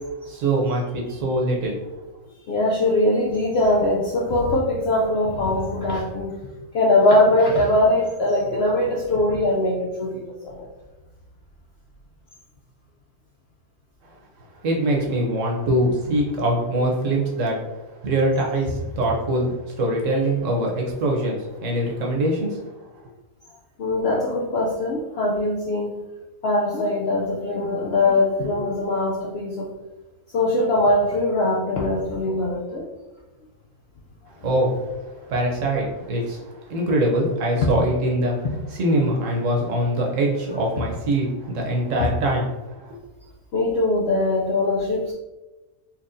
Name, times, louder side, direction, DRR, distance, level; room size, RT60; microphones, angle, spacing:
voice 1, 0.3-1.8 14.6-17.6 18.0-22.6 34.4-34.8 35.3-38.4 38.7-43.0, right 1 dB, 60° right, 0 dB, 1.1 m, -23 dB
voice 2, 2.5-6.4 6.7-10.7 23.8-26.0 26.4-29.7 30.3-32.9 43.5-45.1, left 1 dB, 65° left, -3 dB, 0.6 m, -21 dB
4.2 x 3.0 x 2.6 m, 1.1 s
omnidirectional pair, 1.6 m